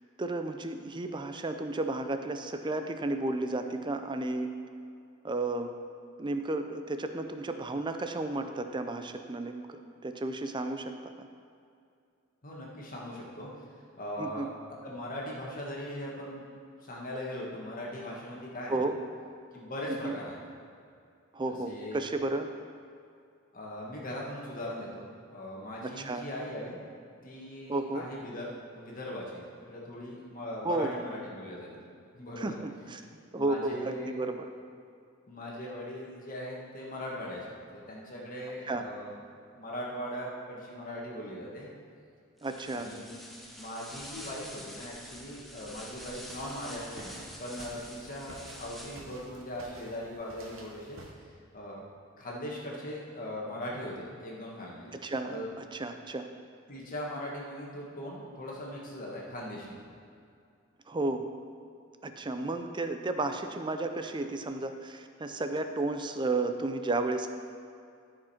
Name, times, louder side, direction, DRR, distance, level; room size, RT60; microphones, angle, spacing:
voice 1, 0.2-4.5 5.2-5.7 6.2-11.3 14.2-14.5 18.7-18.9 19.9-20.1 21.3-22.5 25.8-26.3 27.7-28.1 30.6-30.9 32.4-33.0 33.3-34.5 38.6-38.8 42.4-42.9 54.9-56.3 60.9-61.3 62.0-67.3, right 2 dB, 25° right, 7 dB, 0.5 m, -33 dB
voice 2, 12.4-13.5 14.0-14.5 14.8-16.5 16.8-18.9 19.5-20.4 21.5-22.0 23.5-26.8 27.2-29.4 29.7-31.7 32.1-32.6 33.3-34.1 35.3-39.1 39.5-41.7 42.7-43.2 43.6-51.0 51.5-51.8 52.2-54.9 55.3-55.5 56.7-59.7 62.4-62.6, equal, 45° left, -3 dB, 1.7 m, -40 dB
sound 1, 42.4-49.3, equal, ahead, 0.8 m, -47 dB
sound 2, 45.9-51.1, right 1 dB, 80° right, 1.3 m, -51 dB
13.5 x 5.2 x 4.3 m, 2.4 s
head